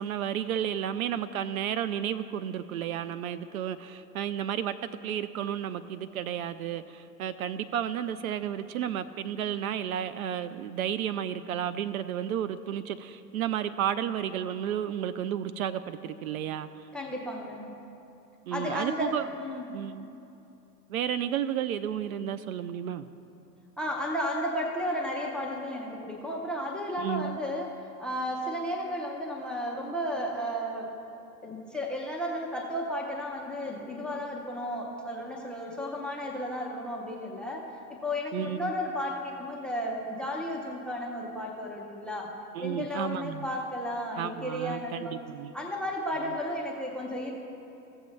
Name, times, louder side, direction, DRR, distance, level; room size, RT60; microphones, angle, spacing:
voice 1, 0.0-16.7 18.5-19.2 19.7-20.1 20.9-23.1 27.0-27.4 38.3-38.7 42.5-43.5 44.2-45.5, right 10 dB, 60° right, 14 dB, 0.5 m, -32 dB
voice 2, 16.9-17.8 18.5-19.7 23.8-27.7 28.0-30.9 31.4-37.6 37.9-42.3 42.6-45.2 45.5-47.3, equal, ahead, 0 dB, 0.5 m, -33 dB
15.5 x 7.0 x 3.2 m, 2.8 s
hypercardioid pair, 110°, 49 cm